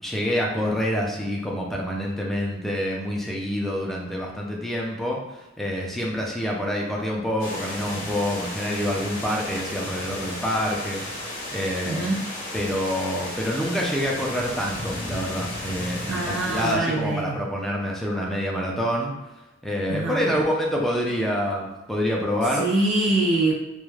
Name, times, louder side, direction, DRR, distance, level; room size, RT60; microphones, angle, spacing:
voice 1, 0.0-11.0 11.5-12.1 12.5-19.1 19.6-22.7, equal, ahead, -3 dB, 0.4 m, -27 dB
sound 1, 7.4-16.7, left 1 dB, 50° left, 0.8 m, -34 dB
voice 2, 16.1-17.4 19.9-20.3 22.5-23.5, right 2 dB, 80° right, -3 dB, 0.4 m, -24 dB
2.3 x 2.1 x 3.1 m, 1.0 s
head